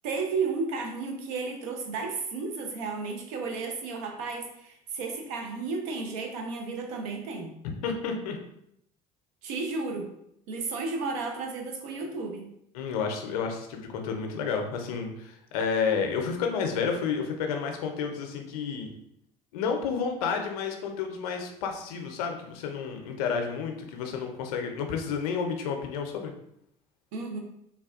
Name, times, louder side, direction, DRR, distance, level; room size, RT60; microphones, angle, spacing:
voice 1, 0.0-7.6 9.4-10.1 10.5-12.5 27.1-27.4, right 4 dB, 75° right, 3 dB, 0.6 m, -33 dB
voice 2, 7.8-8.4 12.7-18.9 19.5-26.3, left 6 dB, 80° left, 4 dB, 0.5 m, -30 dB
3.4 x 2.2 x 2.4 m, 0.75 s
hypercardioid pair, 65°, 19 cm